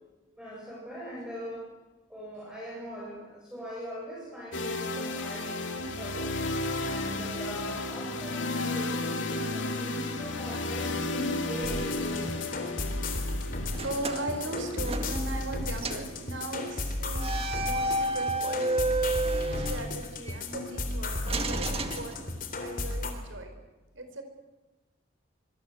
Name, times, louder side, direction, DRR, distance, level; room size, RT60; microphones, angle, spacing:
voice 1, 0.4-1.7 2.1-6.3 6.7-9.0 9.3-12.5, equal, 5° right, -5 dB, 7.8 m, -40 dB
sound 1, 4.5-18.4, left 2 dB, 65° left, 2.8 m, -34 dB
sound 2, 11.6-23.1, left 2 dB, 45° left, 3.6 m, -34 dB
sound 3, 13.7-15.5 15.8-16.1 17.2-20.4 21.3-22.7, right 2 dB, 30° right, 2.0 m, -31 dB
voice 2, 13.8-18.8 19.5-22.2 22.6-23.5 23.9-24.2, right 2 dB, 70° right, 6 dB, 5.0 m, -38 dB
25.5 x 24.5 x 8.1 m, 1.2 s
head